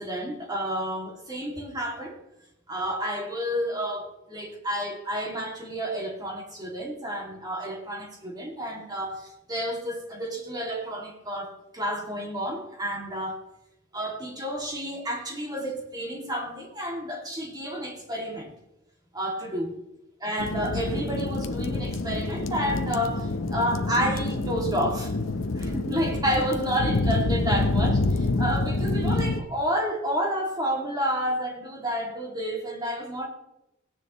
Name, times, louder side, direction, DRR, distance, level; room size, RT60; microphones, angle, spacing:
voice 1, 0.0-2.2 2.7-13.4 13.9-18.5 19.1-19.8 20.2-25.2 25.5-33.3, equal, 20° right, 0 dB, 2.4 m, -30 dB
sound 1, 20.4-29.4, left 2 dB, 75° left, 0.8 m, -27 dB
17.0 x 10.0 x 3.1 m, 0.89 s
head